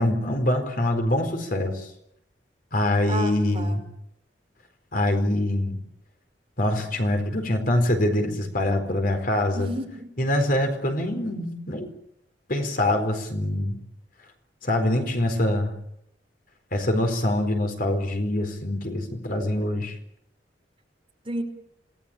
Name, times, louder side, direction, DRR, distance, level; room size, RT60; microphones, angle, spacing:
voice 1, 0.0-1.9 2.7-3.8 4.9-5.8 6.6-9.7 10.2-11.9 12.5-13.8 14.6-15.7 16.7-19.9, left 1 dB, 50° left, 5 dB, 4.4 m, -24 dB
voice 2, 3.1-3.8 9.5-10.3 21.2-21.4, right 1 dB, 30° right, 3 dB, 5.4 m, -32 dB
28.0 x 19.5 x 8.9 m, 0.79 s
head